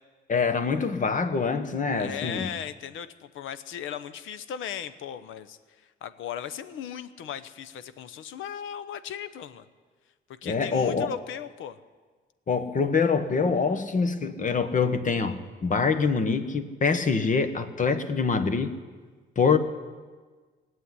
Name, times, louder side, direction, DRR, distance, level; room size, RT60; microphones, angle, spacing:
voice 1, 0.3-2.5 10.4-11.1 12.5-18.7 19.3-19.6, left 5 dB, 40° left, 10 dB, 1.3 m, -25 dB
voice 2, 1.9-9.7 10.4-11.8, left 9 dB, 80° left, 13 dB, 0.9 m, -37 dB
17.5 x 7.8 x 9.8 m, 1.4 s
cardioid pair, 90°, 20 cm